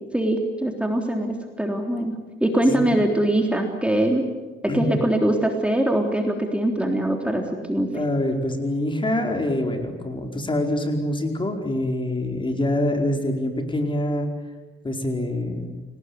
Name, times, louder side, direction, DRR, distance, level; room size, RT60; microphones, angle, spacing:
voice 1, 0.1-4.2 4.7-7.9, right 1 dB, 5° right, 2 dB, 3.6 m, -22 dB
voice 2, 7.9-14.3 14.8-15.8, left 1 dB, 25° left, 4 dB, 4.8 m, -25 dB
28.5 x 19.5 x 9.6 m, 1.2 s
cardioid pair, 90°, 20 cm